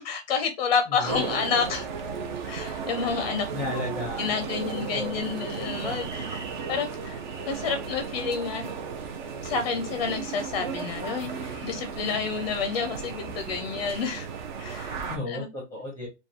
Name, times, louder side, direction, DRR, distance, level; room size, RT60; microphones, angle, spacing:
voice 1, 0.0-1.9 2.5-3.8 4.2-7.2 7.5-8.7 9.4-14.3 14.6-15.0 15.3-15.5, left 6 dB, 35° left, 7 dB, 0.5 m, -29 dB
voice 2, 0.9-1.4 2.6-2.7 3.1-3.2 3.5-4.5 4.9-5.3 15.1-16.1, left 1 dB, 5° left, -3 dB, 0.8 m, -34 dB
sound 1, 1.0-15.2, right 6 dB, 40° right, 0.6 m, -35 dB
5.0 x 2.3 x 2.9 m, 0.25 s
hypercardioid pair, 165°, 38 cm